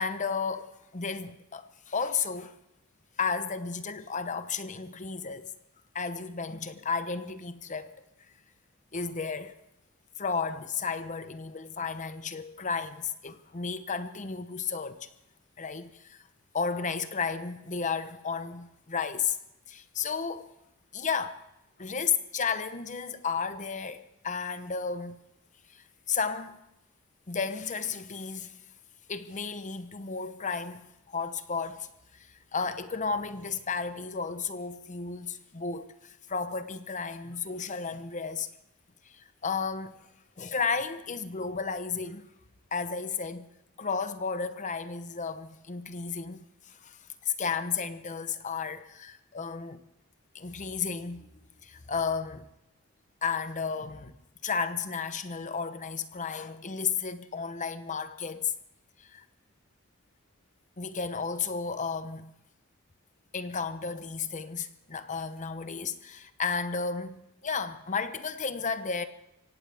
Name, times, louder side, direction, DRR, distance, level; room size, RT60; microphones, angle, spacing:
voice 1, 0.0-2.6 3.2-5.5 5.9-8.0 8.9-9.5 10.2-15.1 15.6-16.2 16.5-19.4 19.7-20.5 20.9-21.4 21.8-25.2 25.7-26.6 27.3-28.6 29.1-38.5 39.0-39.9 40.4-42.3 42.7-43.5 43.8-49.8 50.3-51.3 51.6-52.5 53.2-54.1 54.4-58.5 59.0-59.2 60.8-62.3 63.3-69.0, left 5 dB, 35° left, 0.9 m, -33 dB
24.0 x 17.0 x 3.5 m
head